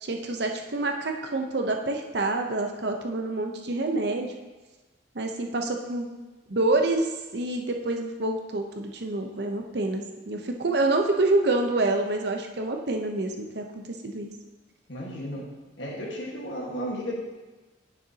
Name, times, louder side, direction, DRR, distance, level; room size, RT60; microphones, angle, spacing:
voice 1, 0.0-4.3 5.1-6.1 6.5-14.3, right 2 dB, 60° right, 3 dB, 0.8 m, -27 dB
voice 2, 14.9-15.5 15.8-17.2, equal, 70° left, -1 dB, 1.6 m, -34 dB
9.6 x 6.4 x 2.8 m, 1.2 s
head